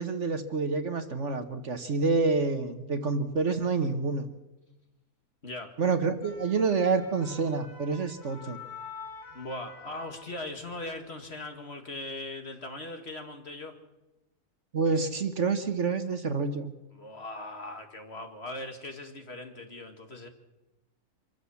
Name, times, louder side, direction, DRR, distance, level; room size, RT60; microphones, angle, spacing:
voice 1, 0.0-4.3 5.8-8.6 14.7-16.7, right 4 dB, 50° right, 8 dB, 1.5 m, -28 dB
voice 2, 5.4-5.7 9.3-13.7 16.9-20.3, left 2 dB, 40° left, 4 dB, 2.2 m, -39 dB
sound 1, 6.0-10.7 11.1-11.3, left 5 dB, 85° left, 5.5 m, -47 dB
25.5 x 14.5 x 7.1 m, 1.0 s
omnidirectional pair, 1.6 m